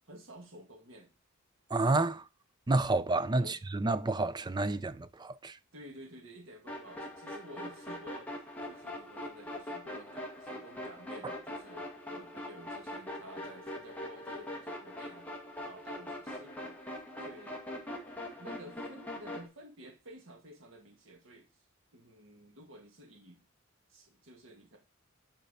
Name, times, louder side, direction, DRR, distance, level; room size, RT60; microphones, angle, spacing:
voice 1, 0.1-1.1 3.4-3.6 5.7-8.3 8.6-15.3 15.6-16.8 17.2-17.6 18.4-21.6 21.9-23.4 23.9-24.8, equal, 65° right, 2.0 m, -52 dB
voice 2, 1.7-2.3 2.7-5.6, right 2 dB, 20° right, 0.5 m, -29 dB
sound 1, 6.7-19.5, left 1 dB, 10° left, 1.9 m, -42 dB
10.0 x 4.5 x 4.2 m
head